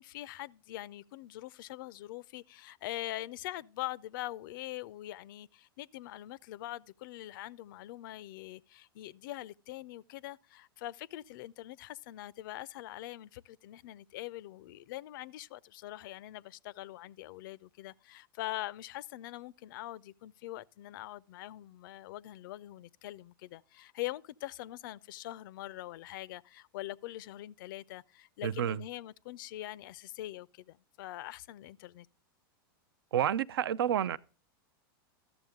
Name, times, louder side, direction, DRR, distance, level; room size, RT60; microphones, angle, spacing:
voice 1, 0.0-32.1, left 15 dB, 60° left, 0.4 m, -43 dB
voice 2, 28.4-28.8 33.1-34.2, right 10 dB, 85° right, 0.4 m, -29 dB
13.0 x 7.0 x 3.6 m
hypercardioid pair, 135°, 12 cm